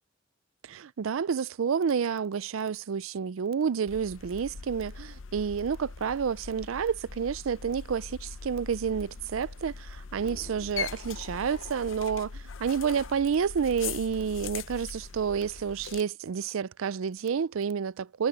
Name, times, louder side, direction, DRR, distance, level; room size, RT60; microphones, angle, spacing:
voice 1, 0.6-18.3, right 6 dB, 80° right, 0.4 m, -30 dB
sound 1, 3.9-16.0, left 6 dB, 70° left, 0.6 m, -41 dB
sound 2, 10.2-12.7, left 1 dB, 40° left, 2.3 m, -54 dB
head